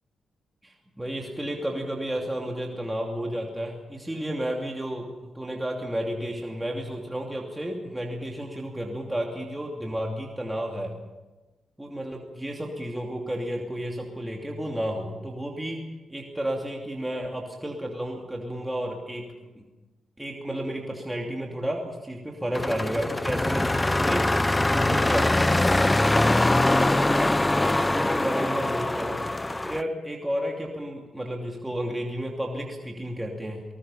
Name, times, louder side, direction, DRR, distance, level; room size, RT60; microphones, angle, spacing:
voice 1, 0.6-5.1 5.3-10.9 11.8-15.8 16.1-19.6 20.2-24.3 24.7-25.5 27.8-29.2 29.6-33.7, equal, 10° right, 0 dB, 2.8 m, -32 dB
sound 1, 22.5-29.8, left 2 dB, 15° left, 0.7 m, -23 dB
27.5 x 19.5 x 5.7 m, 1.2 s
cardioid pair, 70°, 0 cm